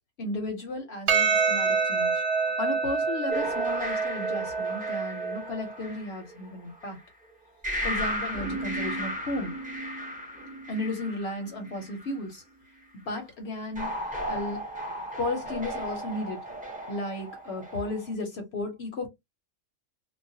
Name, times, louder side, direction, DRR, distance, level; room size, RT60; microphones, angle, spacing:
voice 1, 0.2-2.2 2.6-7.0 7.8-9.5 10.7-12.4 13.1-13.9 14.3-14.6 15.2-16.4 16.9-19.1, left 2 dB, 60° left, 0.8 m, -34 dB
Percussion, 1.1-5.7, right 5 dB, 60° right, 0.8 m, -27 dB
sound 1, 3.3-6.9 7.6-12.1 13.8-18.1, right 1 dB, 10° right, 0.4 m, -35 dB
2.3 x 2.1 x 2.6 m
omnidirectional pair, 1.4 m